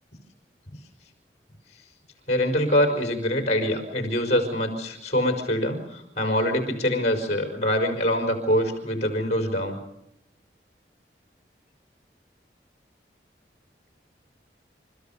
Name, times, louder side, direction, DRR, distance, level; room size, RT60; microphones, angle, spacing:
voice 1, 2.3-9.8, left 1 dB, 40° left, 5 dB, 4.7 m, -24 dB
29.0 x 14.0 x 7.0 m, 0.83 s
head